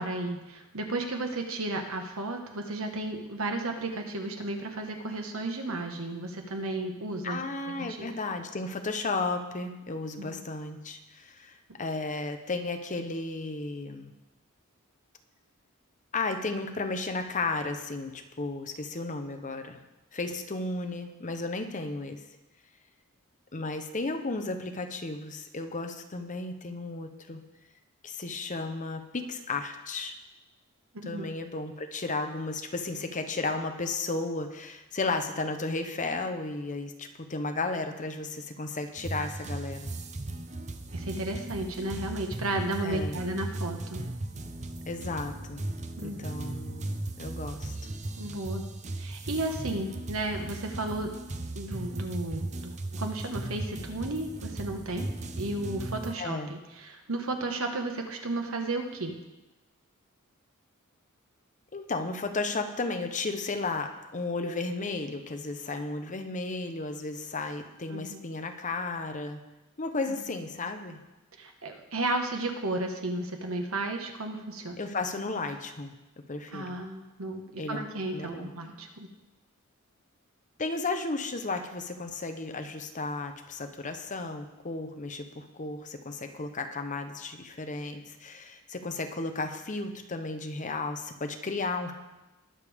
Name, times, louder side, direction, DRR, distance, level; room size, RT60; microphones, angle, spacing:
voice 1, 0.0-8.2 10.2-10.5 30.9-31.3 40.9-44.0 46.0-46.3 48.2-48.6 49.0-51.1 51.5-55.1 55.4-59.2 67.9-68.2 70.1-70.2 71.4-74.8 76.5-79.1, right 2 dB, 75° right, 3 dB, 1.4 m, -34 dB
voice 2, 7.2-14.1 16.1-19.8 20.1-22.2 23.5-27.4 28.0-30.2 31.0-39.9 42.8-43.2 44.9-45.6 46.0-47.7 56.2-56.5 61.7-69.4 69.8-71.0 74.8-75.9 76.3-76.8 77.6-77.9 78.1-78.5 80.6-91.9, left 3 dB, 35° left, 6 dB, 0.9 m, -34 dB
sound 1, 39.0-56.1, right 2 dB, 35° right, 0.7 m, -37 dB
19.5 x 6.9 x 3.6 m, 1.0 s
head